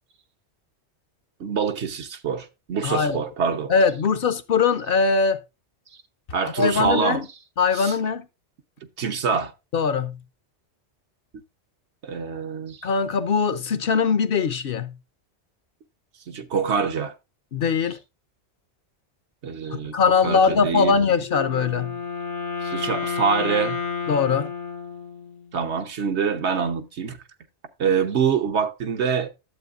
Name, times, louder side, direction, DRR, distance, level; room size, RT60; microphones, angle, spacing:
voice 1, 1.4-3.7 6.3-7.2 7.7-7.9 9.0-9.5 12.0-12.8 16.3-17.1 19.4-19.9 20.2-20.9 22.6-23.8 25.5-27.2 27.8-29.3, right 6 dB, 75° right, 1.2 m, -25 dB
voice 2, 2.8-3.2 3.7-5.4 6.4-7.2 7.6-8.2 9.7-10.2 12.8-14.9 17.5-18.0 19.7-22.0 24.1-24.5, left 5 dB, 60° left, 0.8 m, -21 dB
Wind instrument woodwind instrument, 21.3-25.5, left 6 dB, 80° left, 1.3 m, -30 dB
12.0 x 7.7 x 2.4 m
omnidirectional pair, 1.2 m